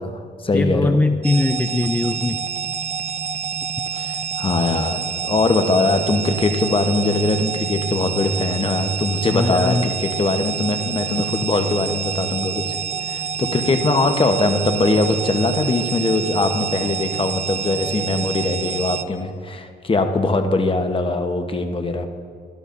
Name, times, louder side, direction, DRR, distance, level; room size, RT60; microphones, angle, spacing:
voice 1, 0.0-1.0 3.9-12.7 13.0-22.1, left 3 dB, 25° left, 6 dB, 1.0 m, -21 dB
voice 2, 0.5-2.4 9.3-9.9, left 2 dB, 10° left, 8 dB, 0.3 m, -20 dB
sound 1, 1.2-19.0, right 6 dB, 35° right, 0.6 m, -27 dB
17.5 x 12.0 x 2.6 m, 2.2 s
cardioid pair, 90°, 20 cm